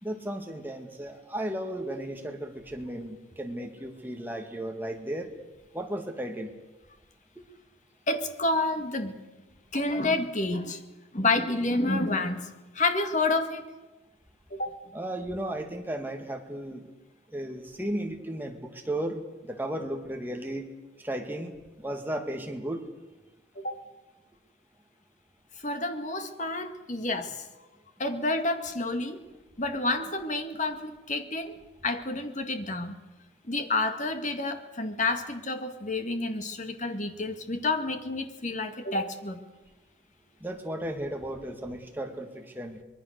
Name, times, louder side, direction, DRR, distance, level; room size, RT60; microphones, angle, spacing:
voice 1, 0.0-5.3 5.7-6.5 14.9-16.8 17.3-19.2 19.5-20.7 21.0-21.5 21.8-22.8 40.4-42.8, right 1 dB, 10° right, 3 dB, 2.1 m, -34 dB
voice 2, 8.1-9.1 9.7-10.8 11.1-13.7 14.5-14.8 23.6-23.8 25.6-27.4 28.0-29.2 29.6-31.6 31.8-33.0 33.5-39.4, left 2 dB, 40° left, 6 dB, 2.0 m, -29 dB
24.5 x 22.0 x 6.7 m, 1.1 s
head